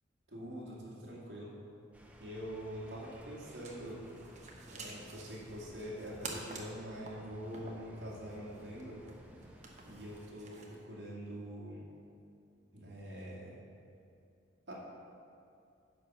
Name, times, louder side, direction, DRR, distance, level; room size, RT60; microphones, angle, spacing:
voice 1, 0.3-1.5 2.2-4.0 4.7-9.0 9.8-11.8 12.7-13.6 14.7-14.8, equal, 65° right, -5 dB, 2.1 m, -44 dB
sound 1, 1.9-10.3, equal, 5° right, 0.6 m, -56 dB
sound 2, 3.3-10.9, right 3 dB, 35° right, 0.9 m, -50 dB
9.9 x 4.6 x 6.2 m, 2.5 s
head